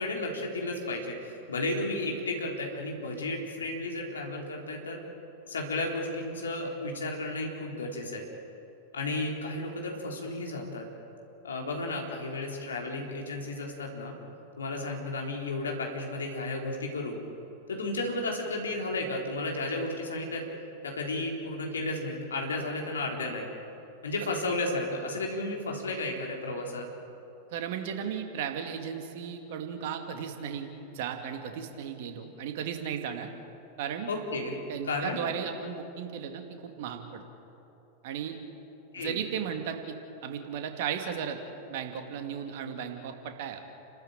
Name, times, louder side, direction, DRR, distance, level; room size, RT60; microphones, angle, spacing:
voice 1, 0.0-5.0 5.5-8.3 8.9-10.9 11.4-14.1 14.6-17.2 17.7-20.4 20.8-23.5 24.0-26.9 34.1-34.6 34.8-35.2 38.9-39.2, left 2 dB, 70° left, 0 dB, 3.8 m, -33 dB
voice 2, 27.5-33.3 33.8-34.1 34.7-37.2 38.0-38.4 39.0-41.4 41.7-43.6, right 8 dB, 50° right, 5 dB, 2.3 m, -35 dB
30.0 x 13.5 x 8.9 m, 2.9 s
figure-of-eight pair, 90°, 0 cm